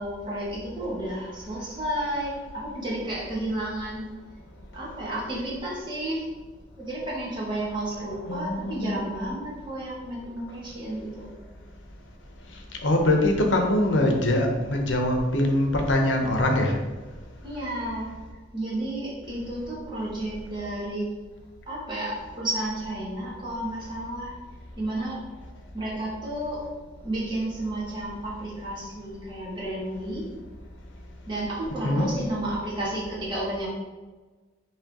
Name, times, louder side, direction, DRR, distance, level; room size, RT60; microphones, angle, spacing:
voice 1, 0.0-4.0 4.7-6.3 6.8-11.3 17.4-18.1 18.5-21.1 21.7-24.3 24.8-25.2 25.7-26.6 27.0-30.3 31.3-33.7, right 1 dB, 25° right, -7 dB, 1.4 m, -32 dB
voice 2, 8.3-9.0 12.8-16.7 31.8-32.1, left 1 dB, 75° left, 2 dB, 0.8 m, -23 dB
4.3 x 3.2 x 3.6 m, 1.3 s
head